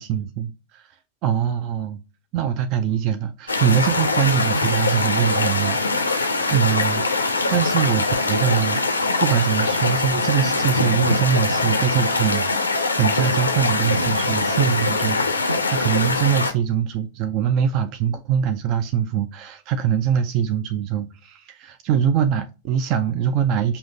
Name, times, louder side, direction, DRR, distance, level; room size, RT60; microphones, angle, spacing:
voice 1, 0.0-0.9 1.2-2.0 2.3-23.8, right 8 dB, 40° right, 0.4 m, -23 dB
sound 1, 3.5-16.5, left 3 dB, 80° left, 0.6 m, -22 dB
5.5 x 2.8 x 2.6 m
figure-of-eight pair, 90°, 0 cm